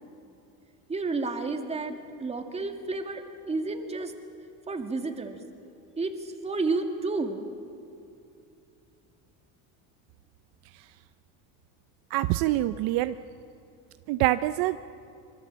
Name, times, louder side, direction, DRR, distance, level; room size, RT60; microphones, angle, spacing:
voice 1, 0.9-4.1 4.7-5.4 6.0-7.5, right 3 dB, 15° right, 5 dB, 2.2 m, -31 dB
voice 2, 12.1-13.1 14.1-14.8, right 16 dB, 65° right, 12 dB, 0.7 m, -25 dB
25.5 x 24.0 x 7.5 m, 2.6 s
cardioid pair, 140°, 38 cm